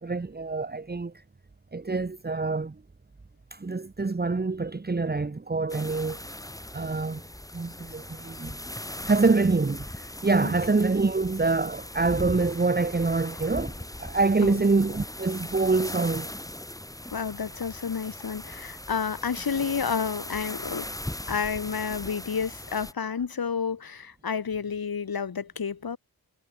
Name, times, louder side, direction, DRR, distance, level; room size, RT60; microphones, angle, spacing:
voice 1, 0.0-1.1 1.7-2.8 3.5-6.2 6.7-7.2 7.5-8.6 9.1-16.3, right 3 dB, 25° right, 1.8 m, -25 dB
sound 1, 5.7-22.9, left 1 dB, 10° left, 2.6 m, -39 dB
voice 2, 17.1-20.9 21.3-26.0, left 6 dB, 80° left, 6.2 m, -30 dB
wide cardioid pair, 130°, 35 cm